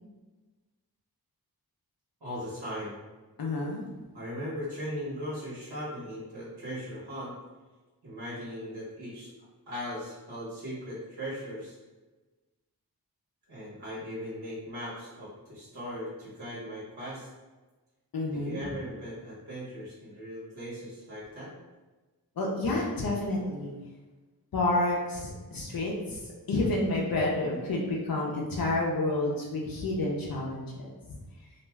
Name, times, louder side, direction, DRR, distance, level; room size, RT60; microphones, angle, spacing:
voice 1, 2.2-3.0 4.1-7.4 8.0-9.3 9.7-11.8 13.5-17.3 18.3-21.5, equal, 80° right, -9 dB, 1.1 m, -38 dB
voice 2, 3.4-3.8 18.1-18.6 22.4-23.7 24.5-26.2 26.5-30.7 31.1-31.2, left 2 dB, 60° left, -3 dB, 0.6 m, -29 dB
2.5 x 2.3 x 3.1 m, 1.2 s
cardioid pair, 55°, 39 cm